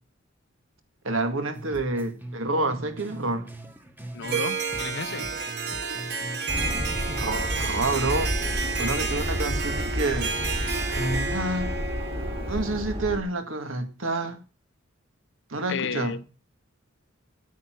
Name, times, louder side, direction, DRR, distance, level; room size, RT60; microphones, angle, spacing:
voice 1, 1.0-3.5 7.2-8.3 8.8-10.3 10.9-11.7 12.5-14.4 15.5-16.2, right 2 dB, 70° right, 1.9 m, -28 dB
sound 1, 1.5-4.5 4.7-7.9, right 1 dB, 10° right, 1.3 m, -41 dB
voice 2, 4.1-5.3 15.7-16.2, left 5 dB, 60° left, 0.8 m, -33 dB
Harp, 4.2-13.0, right 4 dB, 55° right, 1.9 m, -31 dB
sound 2, 6.5-13.2, equal, 30° right, 3.4 m, -31 dB
10.0 x 9.4 x 6.1 m
head